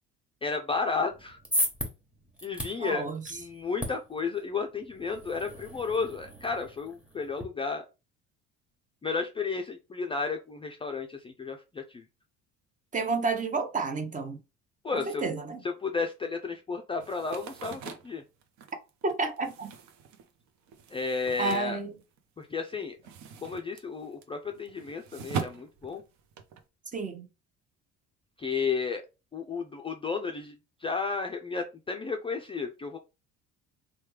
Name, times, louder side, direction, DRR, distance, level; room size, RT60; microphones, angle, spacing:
voice 1, 0.4-1.4 2.4-7.8 9.0-12.0 14.8-15.2 15.8-18.2 20.9-21.8 22.4-23.0 23.4-26.0 28.4-29.0 29.3-33.0, left 4 dB, 20° left, 0.3 m, -33 dB
sound 1, 1.1-7.4, equal, 5° right, 1.0 m, -37 dB
voice 2, 2.8-3.4 12.9-14.4 14.9-15.6 19.0-19.7 21.4-22.0 26.9-27.3, right 3 dB, 25° right, 0.6 m, -31 dB
sound 2, 17.0-22.4 22.7-26.6, right 7 dB, 65° right, 0.7 m, -41 dB
3.1 x 2.2 x 3.2 m
cardioid pair, 95°, 30 cm